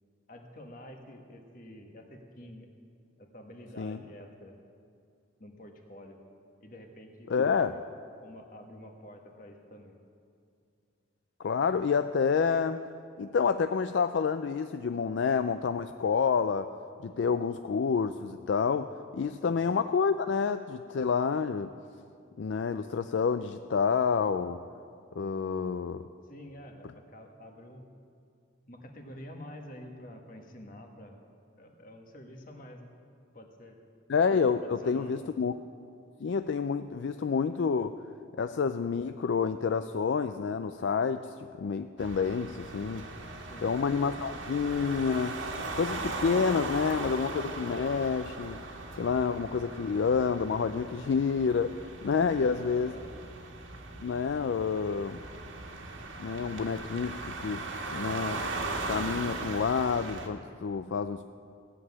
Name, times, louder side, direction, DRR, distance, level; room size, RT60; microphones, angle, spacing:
voice 1, 0.3-2.7 3.2-4.5 5.4-6.2 6.6-7.9 8.2-10.0 19.4-19.6 26.3-27.9 28.7-31.2 31.6-32.9 33.3-33.8 34.8-35.2 43.4-43.7 52.2-53.1, left 1 dB, 45° left, 3 dB, 1.6 m, -48 dB
voice 2, 7.3-7.8 11.4-12.8 13.2-16.7 17.0-21.7 22.4-24.6 25.2-26.0 34.1-35.5 36.2-38.0 38.4-41.3 41.6-43.1 43.6-45.4 45.8-48.6 49.0-53.0 54.0-55.2 56.2-58.4 58.9-61.3, left 5 dB, 65° left, 10 dB, 0.4 m, -28 dB
sound 1, 42.0-60.3, right 2 dB, 80° right, 1.6 m, -39 dB
15.5 x 7.6 x 9.6 m, 2.4 s
head